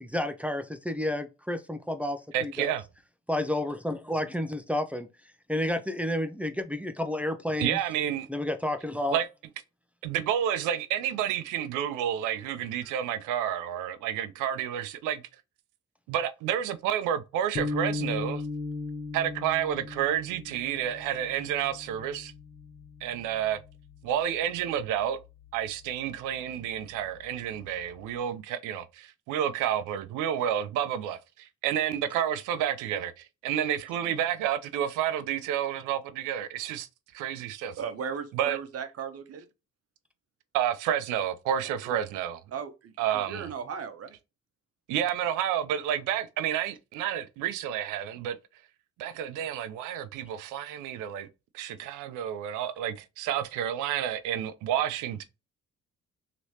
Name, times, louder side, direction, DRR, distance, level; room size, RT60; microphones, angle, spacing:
voice 1, 0.0-2.7 3.3-5.1 5.5-7.8 8.3-9.2, left 1 dB, 5° right, 0.5 m, -30 dB
voice 2, 2.3-2.8 7.6-8.3 9.1-9.3 10.0-15.2 16.1-18.4 19.1-22.3 23.0-23.6 24.0-25.2 25.5-36.9 37.1-37.8 38.3-38.6 40.5-42.4 43.0-43.5 44.9-48.4 49.0-51.3 51.5-55.2, right 10 dB, 90° right, 0.5 m, -30 dB
sound 1, 17.5-24.0, left 3 dB, 45° left, 1.1 m, -37 dB
voice 3, 37.8-39.5 41.6-42.0 42.5-44.2, right 6 dB, 55° right, 0.8 m, -37 dB
3.1 x 2.9 x 2.7 m
supercardioid pair, 65°, 30 cm